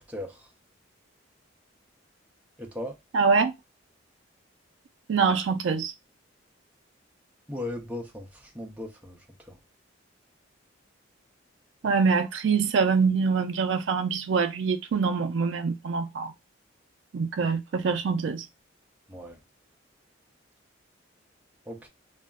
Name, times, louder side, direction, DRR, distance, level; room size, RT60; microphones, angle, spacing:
voice 1, 2.6-2.9 7.5-8.3 8.5-9.2 19.1-19.4 21.7-21.9, left 1 dB, 10° right, 0.5 m, -36 dB
voice 2, 3.1-3.5 5.1-5.9 11.8-16.3 17.1-18.5, right 5 dB, 65° right, 0.4 m, -24 dB
2.3 x 2.1 x 3.5 m
head